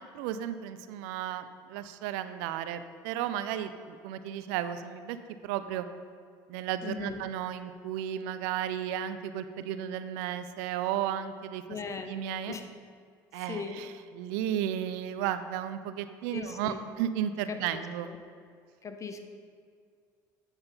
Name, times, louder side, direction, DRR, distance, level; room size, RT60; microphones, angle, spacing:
voice 1, 0.1-5.9 6.5-11.6 12.1-12.6 13.3-18.1, right 10 dB, 75° right, 11 dB, 0.5 m, -34 dB
voice 2, 6.8-7.2 11.7-12.1 12.5-12.7 13.5-13.8 16.3-16.8 17.5-18.2 18.8-19.2, left 5 dB, 30° left, 7 dB, 0.9 m, -39 dB
8.8 x 6.6 x 4.1 m, 2.1 s
hypercardioid pair, 70°, 10 cm